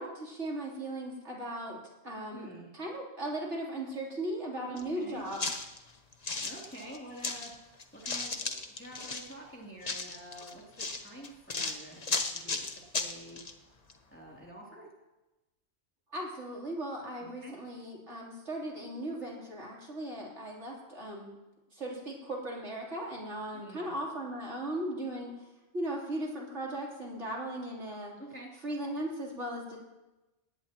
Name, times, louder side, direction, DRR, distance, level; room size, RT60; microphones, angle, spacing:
voice 1, 0.0-1.8 2.0-5.4 16.1-21.3 21.7-25.3 25.7-28.1 28.6-29.8, right 1 dB, 80° right, -3 dB, 3.8 m, -37 dB
voice 2, 2.3-2.7 4.6-5.2 6.4-7.5 7.9-13.4 14.1-14.9 17.2-17.6 23.5-23.9 28.2-28.5, right 1 dB, 10° left, -4 dB, 3.0 m, -48 dB
sound 1, 4.8-4.9 5.3-7.5 7.8-9.3 9.8-13.5 13.9-14.0, left 3 dB, 35° left, 1.1 m, -35 dB
18.5 x 17.0 x 3.0 m, 1.0 s
omnidirectional pair, 1.2 m